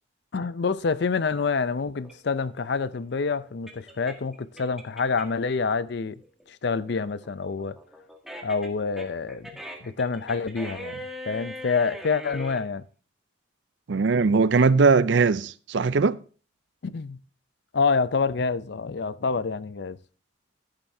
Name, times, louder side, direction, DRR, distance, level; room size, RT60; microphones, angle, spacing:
voice 1, 0.3-6.2 6.5-7.8 8.4-9.5 9.8-12.8 16.8-17.2 17.7-20.0, left 4 dB, 65° left, 0.5 m, -27 dB
sound 1, 2.0-5.5 5.9-12.6, equal, ahead, 1.6 m, -40 dB
voice 2, 13.9-16.2, right 4 dB, 70° right, 0.5 m, -20 dB
14.0 x 10.5 x 2.7 m
head